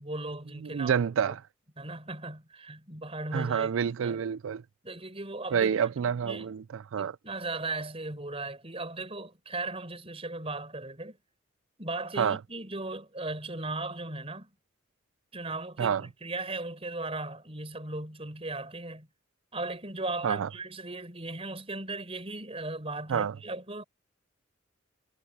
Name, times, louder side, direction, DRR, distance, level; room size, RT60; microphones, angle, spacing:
voice 1, 0.0-1.0 1.2-1.3 1.8-4.2 4.8-5.8 6.2-6.5 7.0-11.2 11.8-14.5 15.3-19.1 19.5-23.8, right 2 dB, 30° right, 5.0 m, -37 dB
voice 2, 0.6-1.4 3.3-4.6 5.5-7.2 12.2-12.4 15.8-16.0 20.2-20.5 23.1-23.4, right 7 dB, 80° right, 0.4 m, -28 dB
head